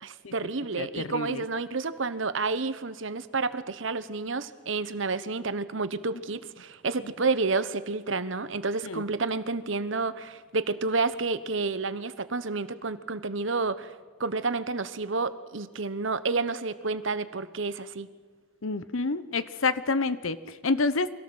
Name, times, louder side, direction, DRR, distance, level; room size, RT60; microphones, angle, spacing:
voice 1, 0.0-13.9 14.2-18.1, right 3 dB, 70° right, 13 dB, 1.1 m, -30 dB
voice 2, 0.8-1.4 8.8-9.0 18.6-21.1, left 3 dB, 85° left, 15 dB, 1.0 m, -28 dB
24.0 x 17.0 x 7.9 m, 1.4 s
head